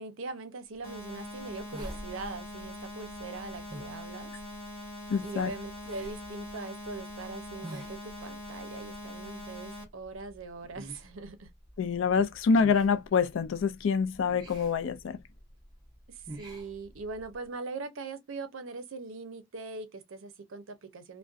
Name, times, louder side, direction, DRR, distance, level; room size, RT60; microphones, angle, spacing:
voice 1, 0.0-4.3 5.2-11.5 16.1-21.2, right 3 dB, 70° right, 0.5 m, -41 dB
sound 1, 0.8-9.8, left 1 dB, 45° left, 1.1 m, -43 dB
sound 2, 0.8-17.4, right 1 dB, 20° right, 0.7 m, -49 dB
voice 2, 5.1-5.5 11.8-15.2, left 5 dB, 65° left, 0.3 m, -26 dB
2.6 x 2.1 x 2.3 m
head